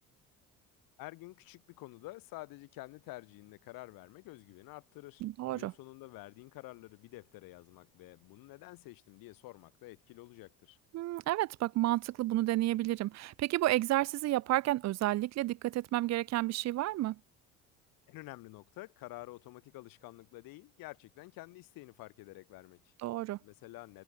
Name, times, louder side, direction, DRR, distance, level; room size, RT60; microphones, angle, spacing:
voice 1, 1.0-10.8 18.1-22.9 23.4-24.0, left 20 dB, 80° left, 3.9 m, -49 dB
voice 2, 5.2-5.7 10.9-17.2 23.0-23.4, right 16 dB, 50° right, 0.5 m, -31 dB
cardioid pair, 100°, 34 cm